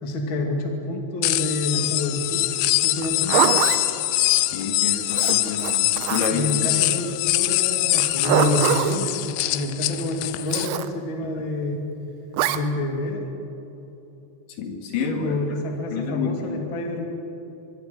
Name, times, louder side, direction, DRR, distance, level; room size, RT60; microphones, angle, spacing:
voice 1, 0.0-2.4 2.8-3.4 6.3-9.2 9.5-11.8 12.5-13.3 15.2-17.1, left 2 dB, 35° left, 2 dB, 2.2 m, -28 dB
sound 1, 1.2-10.7, left 17 dB, 90° left, 3.0 m, -23 dB
Zipper (clothing), 3.0-3.8 5.1-6.5 7.9-9.0 10.5-10.9 12.3-12.6, right 11 dB, 90° right, 3.1 m, -23 dB
voice 2, 4.5-6.4 14.6-15.4 15.9-16.6, left 5 dB, 55° left, 3 dB, 3.2 m, -29 dB
24.0 x 23.0 x 5.3 m, 3.0 s
omnidirectional pair, 5.1 m